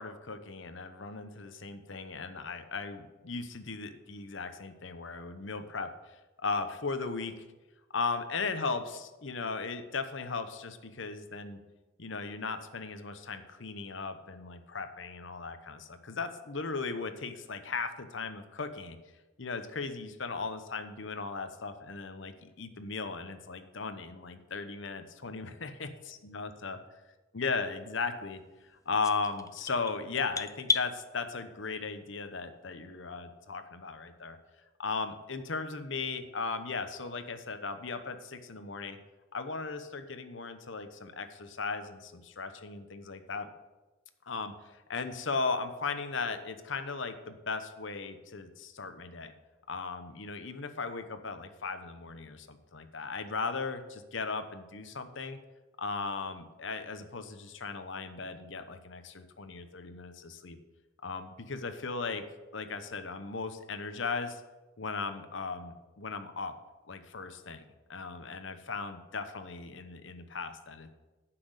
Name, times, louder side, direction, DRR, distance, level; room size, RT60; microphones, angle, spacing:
voice 1, 0.0-7.3 7.9-11.6 12.0-19.0 19.4-25.9 26.2-26.8 27.3-28.4 28.7-34.4 34.8-39.0 39.3-43.5 44.3-49.3 49.7-55.4 55.8-60.6 61.0-62.2 62.5-64.4 64.8-66.5 66.9-67.6 67.9-70.9, left 4 dB, 60° left, 9 dB, 1.0 m, -37 dB
sound 1, 29.0-30.9, left 5 dB, 15° left, 0.3 m, -33 dB
10.5 x 6.0 x 8.0 m, 1.1 s
head